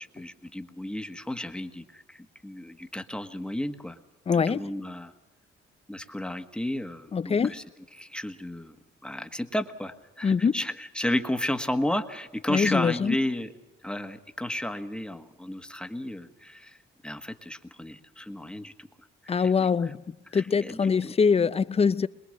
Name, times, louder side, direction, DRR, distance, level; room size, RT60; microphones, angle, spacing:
voice 1, 0.0-4.0 4.5-5.1 5.9-7.6 8.0-8.7 9.0-13.5 13.8-16.8 17.0-18.9 19.2-19.9 20.3-21.1, left 1 dB, 5° left, 1.6 m, -33 dB
voice 2, 4.3-4.6 7.1-7.5 10.2-10.5 12.5-13.2 19.3-20.0 20.3-22.1, left 5 dB, 30° left, 0.6 m, -23 dB
23.5 x 21.0 x 6.6 m
cardioid pair, 90°, 20 cm